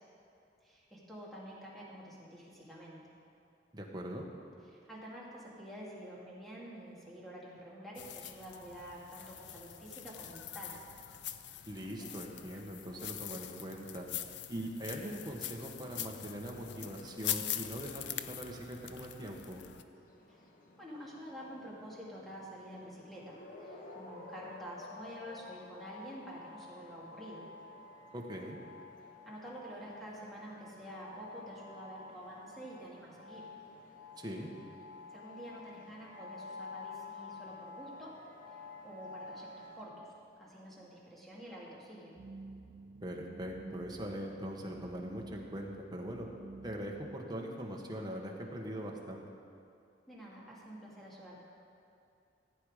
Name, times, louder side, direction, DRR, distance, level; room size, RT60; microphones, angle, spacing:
voice 1, 0.6-3.0 4.7-10.8 20.3-20.5 20.8-27.5 29.3-33.5 35.1-38.2 38.8-40.1 40.4-42.1 50.1-51.4, equal, ahead, -6 dB, 2.5 m, -48 dB
voice 2, 3.7-4.3 11.7-14.1 14.5-19.6 28.1-28.6 34.2-34.5 43.0-46.3 46.6-49.2, equal, 25° right, 0 dB, 1.4 m, -41 dB
sound 1, 7.9-19.8, left 11 dB, 75° left, 0.5 m, -43 dB
sound 2, 19.9-39.9, left 3 dB, 50° left, 1.3 m, -51 dB
sound 3, 42.2-47.2, right 3 dB, 45° right, 0.4 m, -51 dB
15.5 x 8.8 x 5.0 m, 2.6 s
head